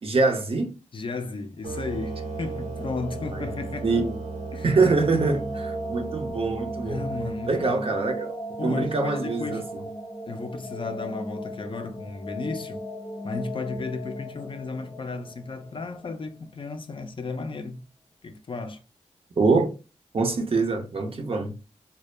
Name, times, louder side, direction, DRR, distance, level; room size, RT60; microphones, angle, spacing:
voice 1, 0.0-0.7 3.3-3.5 3.8-4.2 4.6-7.0 7.5-9.8 19.4-19.7 20.1-21.5, right 3 dB, 50° right, 0.6 m, -24 dB
voice 2, 0.9-3.9 4.5-4.7 6.8-7.9 8.6-9.8 10.3-12.8 13.2-17.8 18.2-18.8, left 3 dB, 45° left, 0.4 m, -34 dB
sound 1, 1.6-16.5, right 1 dB, 25° left, 0.8 m, -37 dB
sound 2, 1.6-7.7, right 4 dB, 75° right, 1.0 m, -37 dB
2.0 x 2.0 x 3.0 m
cardioid pair, 50°, 12 cm